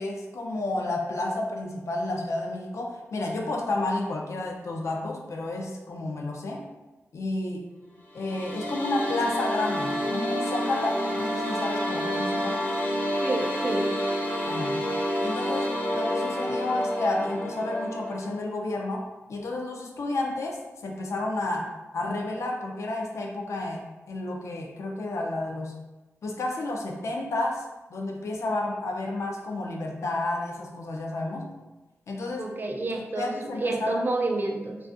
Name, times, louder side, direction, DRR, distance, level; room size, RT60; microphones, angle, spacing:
voice 1, 0.0-6.6 7.1-7.7 8.1-12.7 14.4-14.8 15.2-25.7 26.2-31.5 32.1-32.5 32.9-34.0, left 2 dB, 75° left, 1 dB, 0.4 m, -31 dB
sound 1, 8.1-18.3, equal, 30° left, 0.6 m, -29 dB
voice 2, 13.2-13.8 32.4-34.8, right 2 dB, 40° right, 2 dB, 0.3 m, -29 dB
2.4 x 2.3 x 2.5 m, 1.1 s
wide cardioid pair, 105°, 5 cm